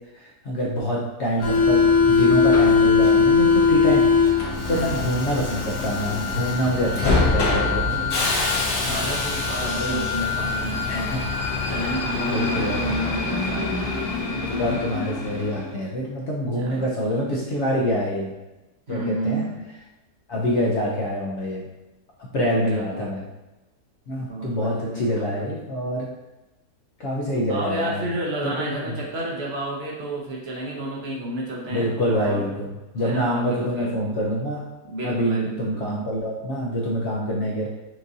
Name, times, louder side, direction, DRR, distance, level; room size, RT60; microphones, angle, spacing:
voice 1, 0.4-4.1 4.7-8.1 9.8-10.0 10.9-11.2 12.3-12.9 14.3-18.3 18.9-19.5 20.3-21.7 22.3-23.2 24.1-26.1 27.0-28.0 28.4-28.8 31.7-34.6 35.0-37.7, equal, 55° left, -3 dB, 0.9 m, -26 dB
Subway metro underground, 1.4-15.7, left 4 dB, 75° left, 1.4 m, -22 dB
voice 2, 8.8-11.1 11.7-13.7 14.6-14.8 16.5-17.2 18.9-19.7 22.7-23.1 24.1-25.6 27.5-32.4 33.0-34.0 34.8-35.8, right 1 dB, 50° right, -3 dB, 0.9 m, -31 dB
6.1 x 2.5 x 2.7 m, 1.0 s
omnidirectional pair, 1.7 m